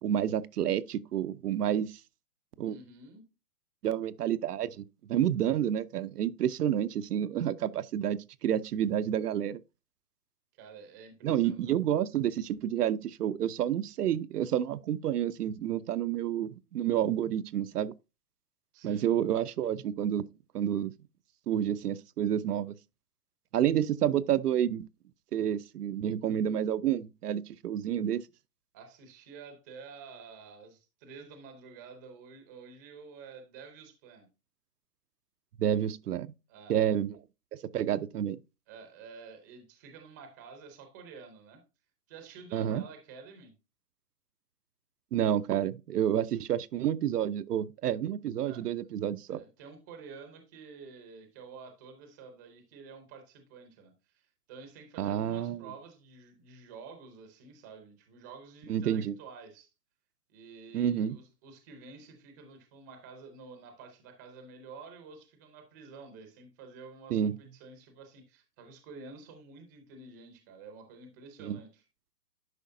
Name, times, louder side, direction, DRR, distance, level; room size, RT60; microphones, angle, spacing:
voice 1, 0.0-2.0 2.6-2.8 3.8-9.6 11.2-17.9 18.8-20.2 20.5-20.9 21.5-22.7 23.5-24.9 25.3-28.2 35.6-36.3 36.7-37.2 37.7-38.4 42.5-42.8 45.1-49.4 55.0-55.6 58.7-59.2 60.7-61.2 67.1-67.3 71.4-71.6, right 10 dB, 70° right, 0.6 m, -29 dB
voice 2, 2.6-3.2 10.5-11.6 18.7-19.1 28.7-34.3 36.5-36.8 38.7-41.6 42.1-43.5 48.4-48.7 49.3-59.7 60.3-71.8, right 4 dB, 10° right, 0.6 m, -50 dB
10.5 x 4.9 x 2.6 m
hypercardioid pair, 150°, 48 cm